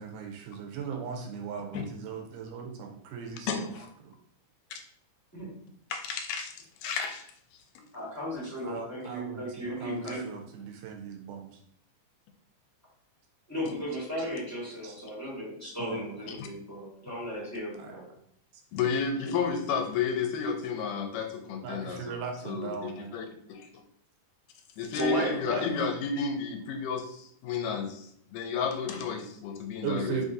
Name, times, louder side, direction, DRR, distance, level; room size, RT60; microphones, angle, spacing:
voice 1, 0.0-3.7 4.0-4.2 8.6-11.6 14.8-14.9 15.8-16.3 17.8-18.0 21.6-23.1 29.8-30.3, right 6 dB, 85° right, 3 dB, 2.2 m, -38 dB
voice 2, 3.5-3.9 4.7-4.8 5.9-6.5 6.8-7.2 16.3-16.5 18.7-22.2 22.4-23.7 24.8-30.2, left 5 dB, 90° left, 4 dB, 2.2 m, -32 dB
voice 3, 7.9-10.2 13.5-18.1 24.9-25.7, left 1 dB, 15° left, -8 dB, 0.6 m, -34 dB
5.1 x 2.6 x 3.8 m, 0.67 s
omnidirectional pair, 3.7 m